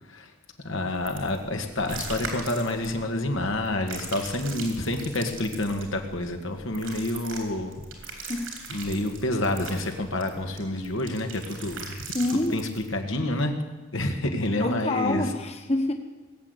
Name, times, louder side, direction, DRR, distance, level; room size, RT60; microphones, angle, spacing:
voice 1, 0.6-7.7 8.1-8.4 8.7-12.0 12.3-13.5 13.9-15.3, left 1 dB, 85° left, 4 dB, 1.9 m, -28 dB
sound 1, 1.0-12.9, right 4 dB, 85° right, 3.6 m, -41 dB
voice 2, 8.3-8.8 12.1-12.6 14.6-15.9, left 2 dB, 35° left, 4 dB, 1.2 m, -27 dB
19.5 x 8.1 x 8.3 m, 1.2 s
head